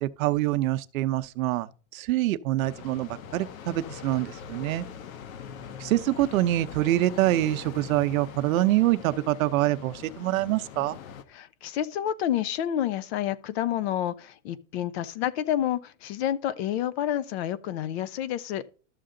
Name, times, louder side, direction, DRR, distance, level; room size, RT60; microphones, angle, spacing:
voice 1, 0.0-4.8 5.8-11.0, right 15 dB, 80° right, 0.8 m, -25 dB
sound 1, 2.6-11.2, left 7 dB, 80° left, 1.2 m, -42 dB
voice 2, 11.3-18.6, left 11 dB, 50° left, 0.8 m, -29 dB
12.5 x 6.7 x 3.8 m
supercardioid pair, 165°, 40 cm